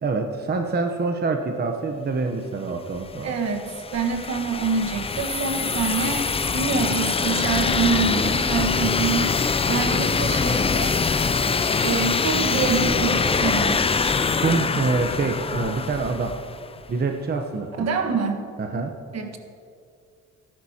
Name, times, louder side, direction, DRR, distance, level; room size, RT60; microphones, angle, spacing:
voice 1, 0.0-3.4 14.4-16.3 16.9-17.9 18.6-18.9, right 4 dB, 35° right, 3 dB, 0.9 m, -26 dB
sound 1, 3.0-16.7, left 5 dB, 20° left, 0.4 m, -24 dB
voice 2, 3.2-9.3 9.7-11.0 11.8-13.8 17.8-18.4 19.1-19.4, right 5 dB, 60° right, 4 dB, 1.5 m, -26 dB
18.5 x 10.5 x 2.9 m, 2.4 s
cardioid pair, 90°, 30 cm